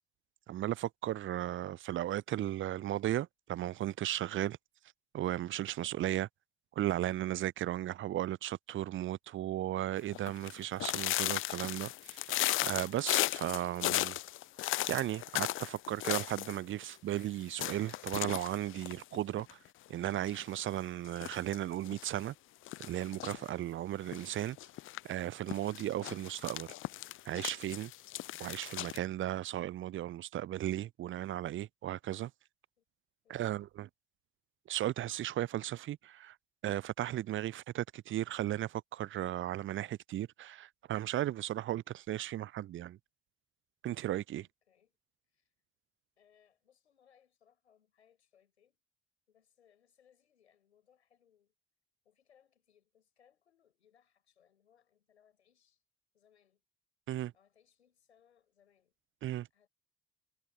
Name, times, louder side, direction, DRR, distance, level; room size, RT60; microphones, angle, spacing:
voice 1, 0.5-4.6 5.1-6.3 6.8-12.2 12.6-14.2 14.9-19.5 19.9-22.3 22.8-24.6 25.0-26.7 27.3-27.9 28.4-32.3 33.3-33.9 34.7-36.3 36.6-43.0 43.8-44.4 57.1-57.3 59.2-59.5, right 13 dB, 40° right, 0.5 m, -35 dB
sound 1, 10.1-16.6 16.8-16.9 17.2-17.3 17.6-19.7 20.0-20.6 21.1-22.1 22.7-23.5 24.1-25.0 25.5-29.0, left 16 dB, 40° left, 0.4 m, -36 dB
voice 2, 33.2-33.7 44.4-45.0 45.3-45.5 46.2-48.8 49.3-51.5 52.0-55.8 56.1-56.6 57.3-58.9 59.5-59.7, left 8 dB, 80° left, 7.1 m, -70 dB
figure-of-eight pair, 45°, 33 cm